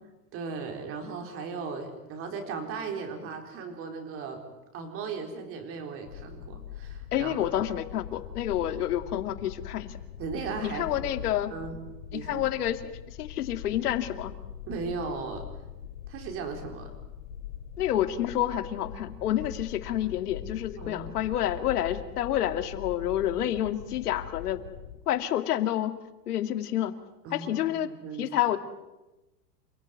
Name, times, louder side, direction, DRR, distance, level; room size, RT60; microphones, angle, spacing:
voice 1, 0.3-4.4 4.7-7.5 10.2-11.1 11.5-11.8 12.1-12.5 14.7-15.4 16.1-17.0 20.8-21.2 27.2-28.3, right 5 dB, 30° right, 4 dB, 4.4 m, -37 dB
sound 1, 6.0-25.0, left 9 dB, 90° left, 3.4 m, -42 dB
voice 2, 7.1-9.9 10.6-11.5 12.3-12.9 13.2-14.3 17.8-24.6 25.1-25.9 26.3-26.9 27.3-27.9 28.2-28.6, left 12 dB, 70° left, 9 dB, 2.4 m, -28 dB
29.0 x 16.5 x 9.5 m, 1.0 s
supercardioid pair, 155°, 47 cm